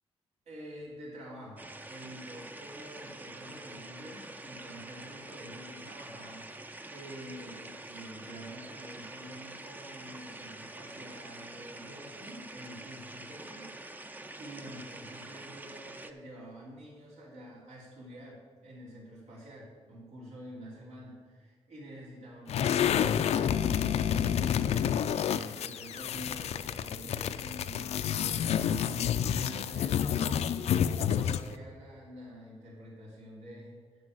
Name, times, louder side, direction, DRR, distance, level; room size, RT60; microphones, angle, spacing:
voice 1, 0.5-13.7 14.0-33.8, equal, 80° right, -4 dB, 3.0 m, -48 dB
sound 1, 1.6-16.1, right 2 dB, 15° right, 0.4 m, -46 dB
sound 2, 22.5-31.6, left 9 dB, 75° left, 0.4 m, -29 dB
9.7 x 6.1 x 6.4 m, 1.5 s
wide cardioid pair, 150°, 11 cm